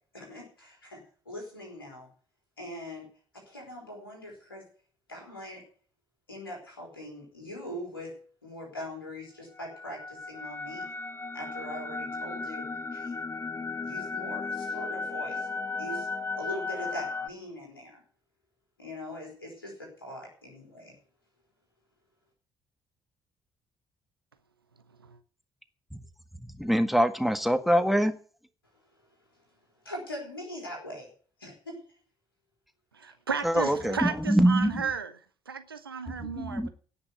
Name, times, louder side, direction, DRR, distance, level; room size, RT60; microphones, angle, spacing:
voice 1, 0.1-2.1 2.6-3.1 3.3-4.7 5.1-5.6 6.3-10.9 11.3-13.2 13.8-15.5 15.8-16.1 16.4-18.0 18.8-21.0 28.9-31.1 31.4-31.8 33.5-34.2, left 1 dB, 85° left, 3.9 m, -42 dB
sound 1, 9.6-17.3, left 4 dB, 20° left, 0.9 m, -35 dB
voice 2, 26.4-28.1 33.4-34.8 36.1-36.7, equal, ahead, 1.6 m, -24 dB
voice 3, 32.9-35.1 35.5-36.7, right 6 dB, 85° right, 0.8 m, -34 dB
17.5 x 6.2 x 7.9 m
figure-of-eight pair, 45°, 12 cm